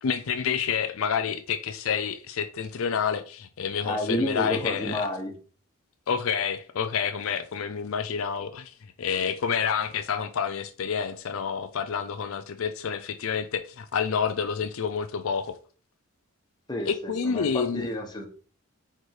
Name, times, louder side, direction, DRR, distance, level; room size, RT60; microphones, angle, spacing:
voice 1, 0.0-5.1 6.1-15.6 16.9-17.9, left 6 dB, 65° left, 0.4 m, -29 dB
voice 2, 3.8-5.3 16.7-18.3, left 1 dB, 20° left, 1.2 m, -30 dB
4.7 x 4.4 x 4.7 m
head